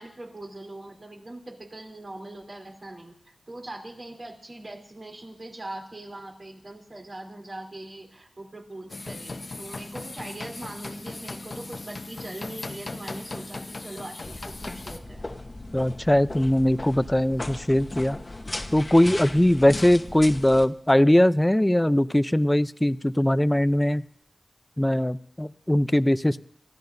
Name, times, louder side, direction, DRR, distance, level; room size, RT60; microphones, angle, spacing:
voice 1, 0.0-15.3, right 1 dB, 50° right, 0 dB, 3.4 m, -41 dB
sound 1, 8.9-15.0, left 2 dB, 60° left, 1.0 m, -38 dB
sound 2, 14.2-20.7, left 2 dB, 40° left, 1.1 m, -37 dB
voice 2, 15.7-18.2 18.7-24.0 24.8-26.5, left 1 dB, 15° left, 14 dB, 0.5 m, -21 dB
28.0 x 14.5 x 2.7 m, 0.67 s
cardioid pair, 50°, 0 cm